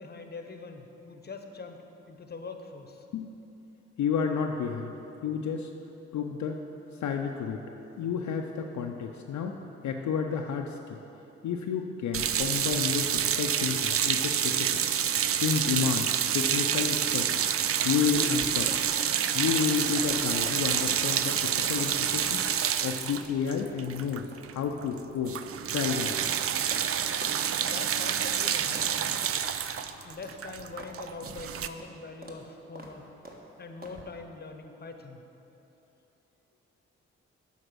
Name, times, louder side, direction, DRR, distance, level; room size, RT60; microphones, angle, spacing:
voice 1, 0.0-3.1 27.6-29.3 30.0-33.1 33.6-35.2, left 4 dB, 30° left, 6 dB, 0.9 m, -43 dB
voice 2, 4.0-4.9 5.2-5.7 6.1-6.6 7.0-7.6 8.0-9.6 9.8-10.7 11.4-14.7 15.4-17.4 17.8-18.8 19.3-22.4 22.8-24.2 24.5-25.3 25.7-26.3, left 7 dB, 60° left, 2 dB, 0.6 m, -30 dB
sound 1, 12.1-24.5 24.8-25.0 25.2-31.7, right 9 dB, 45° right, 0.5 m, -28 dB
sound 2, 18.4-26.4 26.7-26.9 27.1-27.4 27.7-27.9 28.2-28.4 28.7-28.9 29.2-29.4 29.8-29.9 30.2-30.4 30.8-31.0 31.3-31.4 31.8-32.0 32.2-32.4 32.8-33.0 33.3-33.4 33.8-34.0, right 1 dB, 30° right, 1.4 m, -46 dB
8.0 x 5.2 x 6.2 m, 3.0 s
hypercardioid pair, 40°, 33 cm